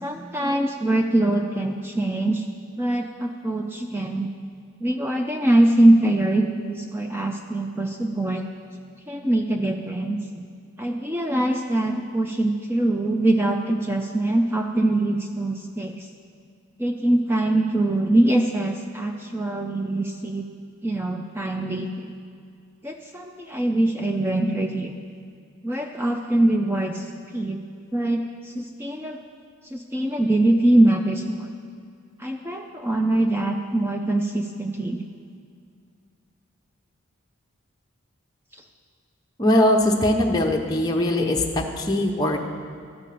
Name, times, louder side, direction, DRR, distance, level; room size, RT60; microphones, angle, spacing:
voice 1, 0.0-2.5 2.8-4.3 4.8-8.5 9.1-10.4 10.8-16.1 16.8-20.5 20.8-22.1 22.8-25.0 25.6-27.6 27.9-29.2 29.6-31.5 32.2-35.0 38.5-38.6, right 1 dB, 10° right, 3 dB, 0.4 m, -23 dB
voice 2, 39.4-42.5, left 1 dB, 20° left, 0 dB, 0.7 m, -21 dB
12.5 x 5.3 x 8.4 m, 2.3 s
head